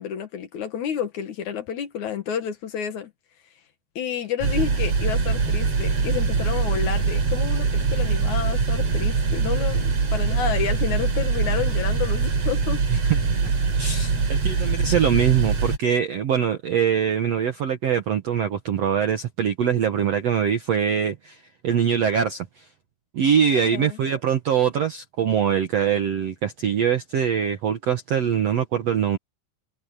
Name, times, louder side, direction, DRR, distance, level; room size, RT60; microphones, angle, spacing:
voice 1, 0.0-3.1 4.0-12.8 14.6-14.7 23.6-24.0, left 8 dB, 60° left, 2.3 m, -30 dB
sound 1, 4.4-15.8, right 4 dB, 40° right, 4.1 m, -23 dB
voice 2, 13.8-21.4 21.6-22.6 23.1-29.2, right 8 dB, 85° right, 1.4 m, -23 dB
omnidirectional pair, 5.0 m